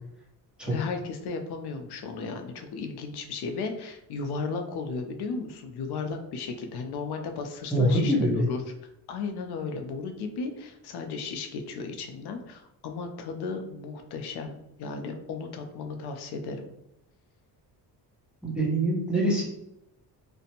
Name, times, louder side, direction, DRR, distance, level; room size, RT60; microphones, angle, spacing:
voice 1, 0.7-8.1 8.5-8.6 9.1-16.7, left 4 dB, 70° left, 5 dB, 0.6 m, -35 dB
voice 2, 7.7-8.5 18.4-19.4, right 1 dB, ahead, -5 dB, 0.8 m, -24 dB
2.5 x 2.1 x 2.8 m, 0.84 s
cardioid pair, 120°, 41 cm